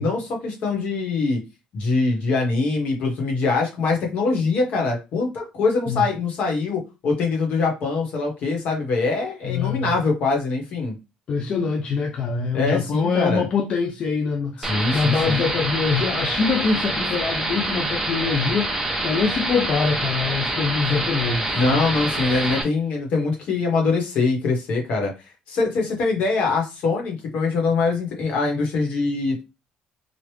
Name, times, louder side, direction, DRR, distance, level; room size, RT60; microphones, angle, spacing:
voice 1, 0.0-1.4 1.7-10.9 12.5-13.4 14.6-15.4 21.5-25.1 25.5-29.4, left 3 dB, 60° left, 1.2 m, -23 dB
voice 2, 9.4-10.0 11.3-21.9, left 5 dB, 40° left, 0.4 m, -24 dB
sound 1, 14.6-22.6, right 1 dB, 10° right, 0.7 m, -26 dB
3.2 x 2.4 x 3.2 m
cardioid pair, 145°, 3 cm